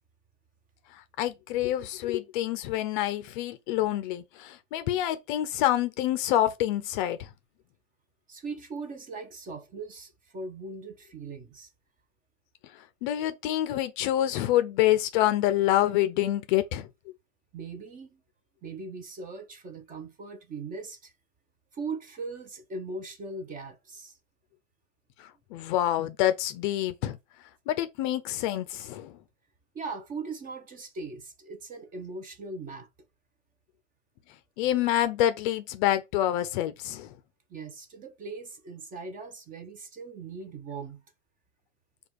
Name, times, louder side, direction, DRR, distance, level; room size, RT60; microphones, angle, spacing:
voice 1, 0.9-7.3 13.0-16.9 25.2-27.2 27.7-29.2 34.6-37.1, left 13 dB, 40° left, 0.6 m, -27 dB
voice 2, 8.3-11.7 17.5-18.2 18.6-21.1 21.7-24.2 29.7-32.9 37.5-41.0, right 3 dB, 20° right, 0.8 m, -39 dB
4.8 x 2.4 x 4.6 m
hypercardioid pair, 110°, 40 cm